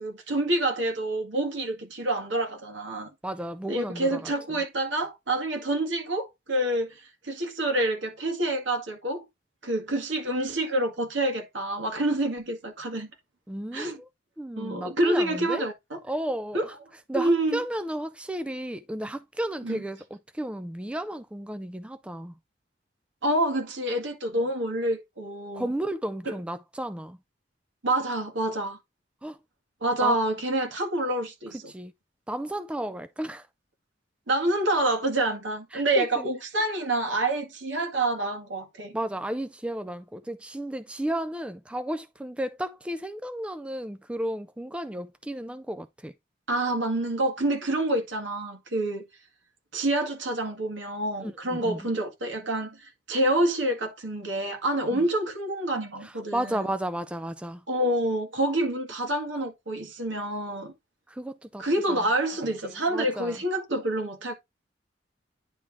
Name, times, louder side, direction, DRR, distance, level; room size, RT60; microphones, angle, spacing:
voice 1, 0.0-3.1 3.7-7.0 7.2-9.2 9.6-13.1 13.7-14.0 14.6-16.0 16.5-16.7 17.1-17.6 19.6-19.8 23.2-25.7 27.8-28.8 29.8-31.6 34.3-38.9 46.5-49.0 49.7-56.6 57.7-60.7 61.6-64.3, right 1 dB, 85° right, 1.9 m, -27 dB
voice 2, 3.2-4.6 13.5-14.1 14.4-15.7 16.0-16.7 17.1-22.3 25.5-27.2 29.2-29.4 30.0-30.2 31.7-31.9 32.3-33.5 35.7-36.3 38.9-46.1 51.2-51.8 54.9-55.1 56.0-57.6 61.1-62.0 62.6-63.4, right 1 dB, 5° right, 0.3 m, -33 dB
9.9 x 3.4 x 3.5 m
head